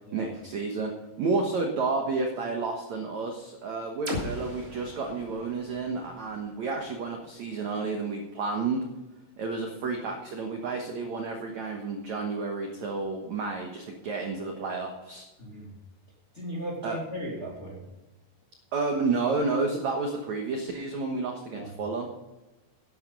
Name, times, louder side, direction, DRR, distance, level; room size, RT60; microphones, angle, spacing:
voice 1, 0.1-0.9 1.2-8.8 9.4-15.2 16.8-17.0 18.7-22.1, right 4 dB, 75° right, 2 dB, 1.6 m, -31 dB
sound 1, 4.1-7.9, left 1 dB, 20° right, 3.0 m, -40 dB
voice 2, 15.4-15.7 16.3-17.9 21.5-21.7, equal, 20° left, -4 dB, 1.9 m, -37 dB
12.0 x 10.5 x 5.4 m, 1.1 s
omnidirectional pair, 5.3 m